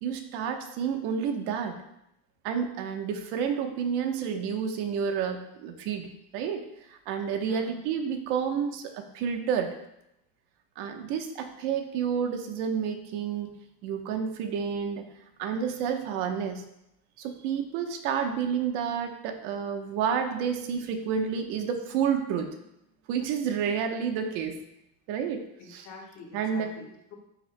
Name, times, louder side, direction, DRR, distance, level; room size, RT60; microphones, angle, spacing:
voice 1, 0.0-1.7 2.4-6.6 6.9-9.7 10.8-13.5 13.8-15.1 15.4-16.6 17.2-22.5 23.1-24.6 25.1-25.4 25.7-25.9 26.3-26.8, right 7 dB, 85° right, 5 dB, 1.1 m, -30 dB
voice 2, 7.3-7.7 25.6-27.2, left 4 dB, 45° left, 1 dB, 1.6 m, -46 dB
12.0 x 6.0 x 2.2 m, 0.82 s
cardioid pair, 165°, 38 cm